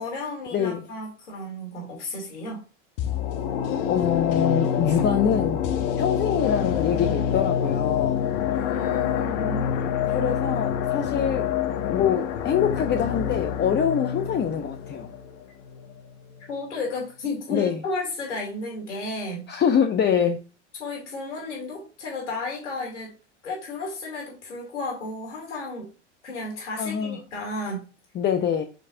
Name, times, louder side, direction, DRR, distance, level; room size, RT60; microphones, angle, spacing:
voice 1, 0.0-2.6 8.5-9.7 10.1-10.2 16.5-19.5 20.8-23.1 23.4-25.9 26.2-27.9, left 2 dB, 85° left, -2 dB, 3.1 m, -33 dB
voice 2, 0.5-0.8 3.9-5.6 6.0-8.2 9.8-11.5 11.8-15.1 17.5-17.8 19.5-20.4 26.8-27.2 28.1-28.6, left 8 dB, 30° left, 6 dB, 0.8 m, -24 dB
sound 1, 3.0-16.1 16.4-16.5, left 9 dB, 55° left, 1.1 m, -26 dB
6.7 x 6.1 x 2.7 m, 0.34 s
hypercardioid pair, 85°, 35 cm